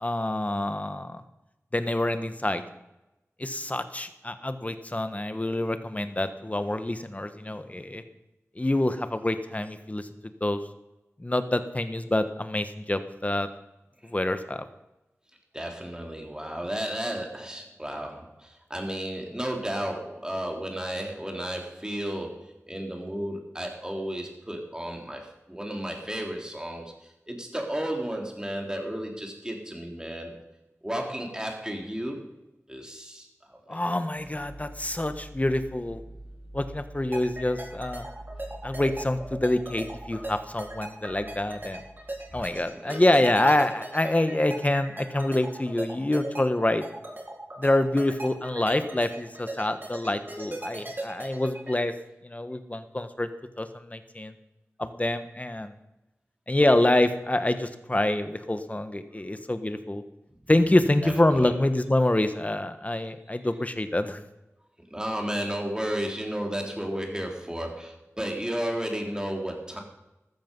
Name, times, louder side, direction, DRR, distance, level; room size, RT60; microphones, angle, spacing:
voice 1, 0.0-1.2 1.7-2.6 3.4-8.0 8.6-10.1 10.4-10.6 11.2-13.5 14.0-14.6 33.7-36.0 36.5-38.1 38.6-41.8 42.3-46.8 47.6-51.9 52.2-53.3 53.6-54.3 54.8-55.7 56.5-60.0 60.5-64.2, left 1 dB, 30° left, 10 dB, 1.3 m, -26 dB
voice 2, 15.5-30.4 30.8-32.2 32.7-33.8 42.7-43.0 61.0-61.5 63.4-63.5 64.9-69.8, right 1 dB, 15° right, 2 dB, 3.6 m, -33 dB
sound 1, 34.1-42.4, right 1 dB, 80° right, 7.2 m, -46 dB
sound 2, 37.1-51.8, right 1 dB, 40° right, 4.2 m, -37 dB
14.0 x 13.0 x 5.5 m, 0.96 s
wide cardioid pair, 55°, 5 cm